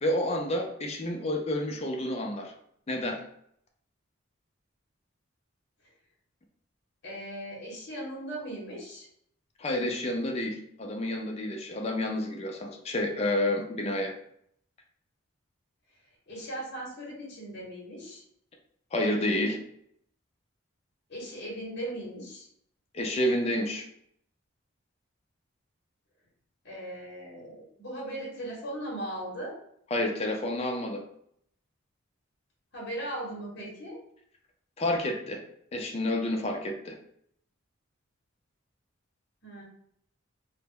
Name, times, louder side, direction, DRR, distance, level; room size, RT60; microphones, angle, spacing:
voice 1, 0.0-2.5 2.9-3.2 9.6-14.1 18.9-19.6 22.9-23.9 29.9-31.0 34.8-35.4 35.7-37.0, left 1 dB, 30° left, 2 dB, 0.4 m, -29 dB
voice 2, 7.0-9.1 16.3-18.2 21.1-22.5 26.6-29.5 32.7-34.0 39.4-39.6, right 1 dB, 55° left, -4 dB, 0.8 m, -38 dB
2.1 x 2.0 x 3.5 m, 0.70 s
head